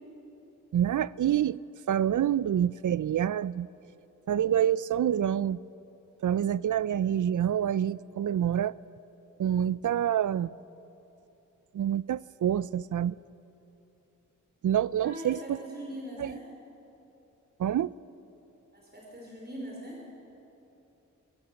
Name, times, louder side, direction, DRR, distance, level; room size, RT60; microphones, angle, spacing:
voice 1, 0.7-1.6 1.9-3.7 4.3-5.6 6.2-8.7 9.4-10.5 11.7-13.1 14.6-15.6 16.2-16.3 17.6-17.9, right 10 dB, 75° right, 0.5 m, -27 dB
voice 2, 15.0-16.5 18.7-20.0, equal, 30° right, 5.2 m, -41 dB
23.5 x 16.0 x 7.0 m
cardioid pair, 45°, 31 cm